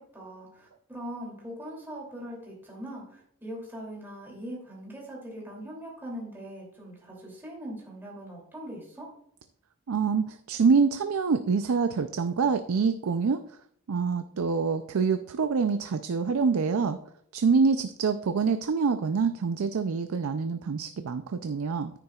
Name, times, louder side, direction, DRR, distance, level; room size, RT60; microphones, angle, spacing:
voice 1, 0.0-9.1, equal, 10° right, -4 dB, 2.7 m, -41 dB
voice 2, 9.9-13.4 13.9-17.0 17.3-21.9, right 5 dB, 70° right, 10 dB, 0.4 m, -26 dB
9.7 x 9.6 x 2.4 m, 0.67 s
head